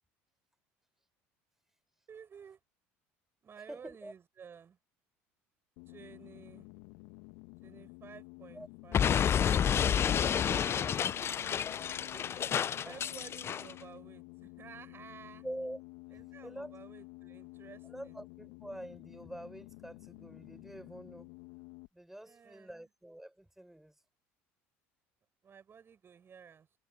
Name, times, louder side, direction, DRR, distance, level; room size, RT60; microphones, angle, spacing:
voice 1, 2.1-2.6 3.4-4.8 5.9-6.7 7.6-9.1 10.2-11.4 12.8-15.4 16.1-18.2 22.2-22.9 25.4-26.8, right 7 dB, 35° right, 5.8 m, -53 dB
voice 2, 3.7-4.1 8.5-8.7 10.4-10.7 12.1-13.0 15.4-15.8 16.4-16.7 17.8-21.3 21.9-23.9, right 1 dB, 5° right, 7.8 m, -46 dB
sound 1, 5.8-21.9, left 25 dB, 70° left, 1.6 m, -52 dB
Explosion, 8.9-13.7, left 8 dB, 40° left, 0.7 m, -30 dB
hypercardioid pair, 70°, 7 cm